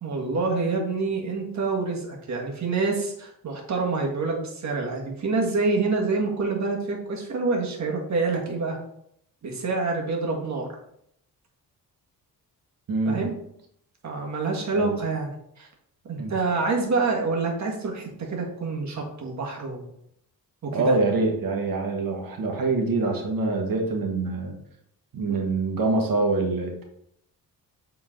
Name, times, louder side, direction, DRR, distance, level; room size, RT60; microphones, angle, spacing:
voice 1, 0.0-8.8 9.4-10.8 13.0-13.4 14.0-15.3 15.6-15.7 16.1-19.9 20.6-20.9 25.3-25.4, right 3 dB, 50° right, 0 dB, 1.7 m, -27 dB
voice 2, 12.9-13.3 14.7-15.0 16.2-16.3 20.7-24.6 25.1-26.8, right 3 dB, 65° right, 2 dB, 1.5 m, -25 dB
7.6 x 3.9 x 3.7 m, 0.73 s
cardioid pair, 125°, 37 cm